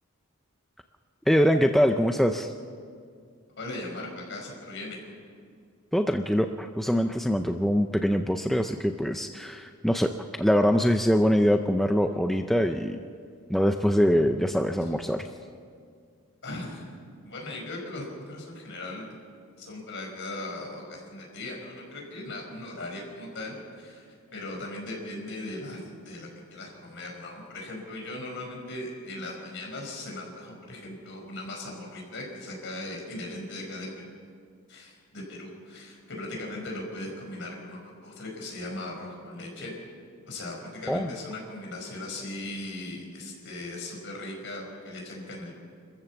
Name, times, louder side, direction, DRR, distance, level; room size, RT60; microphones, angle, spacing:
voice 1, 1.3-2.5 5.9-10.1 10.4-13.0 13.5-15.2 40.9-41.1, equal, ahead, 5 dB, 0.5 m, -23 dB
voice 2, 3.6-5.1 14.8-14.9 16.4-16.9 17.2-19.1 19.6-24.0 24.3-34.0 34.7-39.7 40.3-45.5, left 2 dB, 55° left, 0 dB, 5.0 m, -38 dB
25.5 x 14.5 x 7.1 m, 2.1 s
head